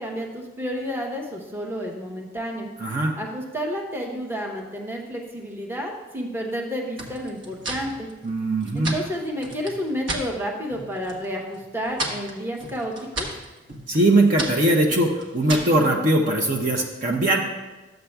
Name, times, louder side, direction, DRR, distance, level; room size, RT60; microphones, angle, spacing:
voice 1, 0.0-2.7 3.2-8.1 8.7-13.3, equal, 10° right, 0 dB, 0.8 m, -30 dB
voice 2, 2.8-3.1 8.2-9.0 13.9-17.4, right 1 dB, 40° right, 0 dB, 0.6 m, -20 dB
sound 1, 7.0-10.3 10.7-11.2 11.5-15.8, right 2 dB, 70° right, 1.3 m, -34 dB
13.0 x 7.8 x 2.3 m, 1.1 s
head